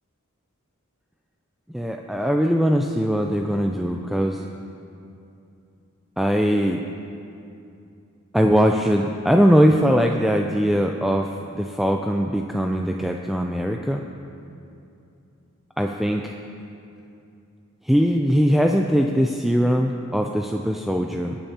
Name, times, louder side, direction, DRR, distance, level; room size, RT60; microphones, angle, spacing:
voice 1, 1.7-4.4 6.2-6.8 8.3-14.0 15.8-16.3 17.8-21.4, equal, ahead, 2 dB, 0.4 m, -21 dB
25.0 x 8.7 x 2.9 m, 2.6 s
head